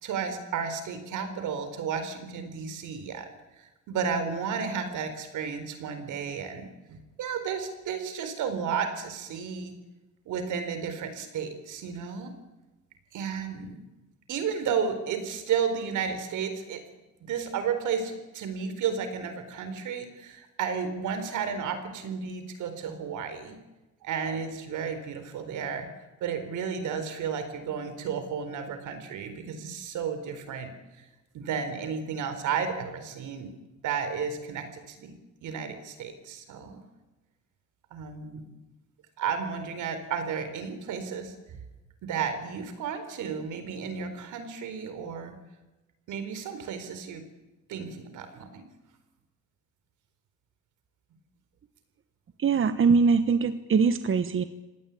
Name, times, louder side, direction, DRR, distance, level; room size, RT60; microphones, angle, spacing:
voice 1, 0.0-3.3 3.9-9.8 10.3-12.4 13.1-13.7 14.3-16.8 17.2-23.6 24.0-25.9 26.2-30.7 31.3-33.5 33.8-35.1 35.4-36.8 37.9-38.4 39.2-41.3 42.0-45.4 46.1-47.2 47.7-48.7, right 6 dB, 85° right, 9 dB, 4.4 m, -32 dB
voice 2, 52.4-54.4, right 5 dB, 45° right, 11 dB, 1.3 m, -22 dB
25.5 x 18.5 x 8.7 m, 1.1 s
cardioid pair, 90°, 30 cm